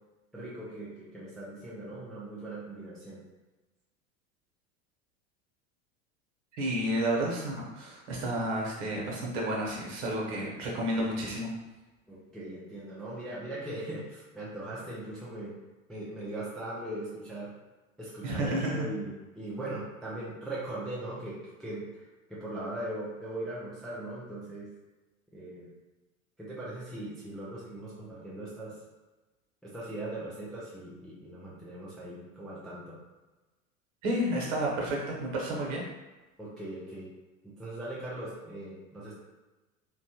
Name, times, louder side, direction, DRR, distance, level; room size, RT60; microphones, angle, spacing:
voice 1, 0.3-3.2 12.1-15.5 15.9-17.5 18.0-21.8 22.3-24.7 25.3-25.7 26.4-28.7 29.6-33.0 36.4-37.1 37.6-39.1, right 1 dB, ahead, -8 dB, 0.3 m, -39 dB
voice 2, 6.6-11.5 18.2-18.8 34.0-35.8, right 1 dB, 55° right, -2 dB, 1.1 m, -31 dB
3.0 x 2.3 x 2.8 m, 1.1 s
figure-of-eight pair, 80°, 42 cm